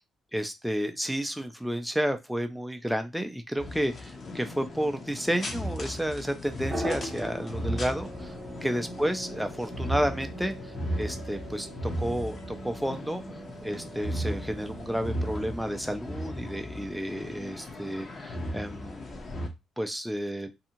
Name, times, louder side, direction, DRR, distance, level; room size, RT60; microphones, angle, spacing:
voice 1, 0.3-8.3 8.6-10.6 11.0-13.2 13.6-19.2 19.8-20.5, equal, ahead, 6 dB, 0.4 m, -31 dB
sound 1, 3.6-19.5, equal, 40° left, 0.7 m, -36 dB
sound 2, 6.7-15.8, right 1 dB, 25° right, 1.1 m, -41 dB
2.6 x 2.3 x 2.8 m, 0.22 s
cardioid pair, 90°, 0 cm